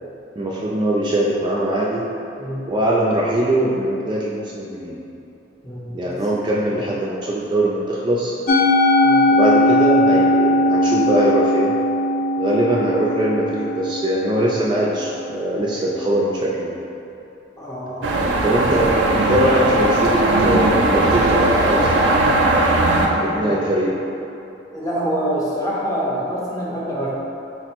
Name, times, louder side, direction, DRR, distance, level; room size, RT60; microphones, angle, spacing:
voice 1, 0.4-2.1 2.7-5.0 5.9-8.3 9.3-11.7 12.4-16.7 18.4-19.0 19.3-22.1 23.2-24.0, right 1 dB, 25° right, -5 dB, 0.3 m, -21 dB
voice 2, 5.6-6.1 9.0-9.2 17.6-18.1 23.1-23.8 24.7-27.2, equal, 20° left, -7 dB, 0.7 m, -26 dB
Musical instrument, 8.5-14.9, left 1 dB, 50° left, 0.4 m, -18 dB
sound 1, 18.0-23.1, right 2 dB, 85° right, 0.5 m, -18 dB
4.2 x 2.0 x 4.3 m, 2.9 s
head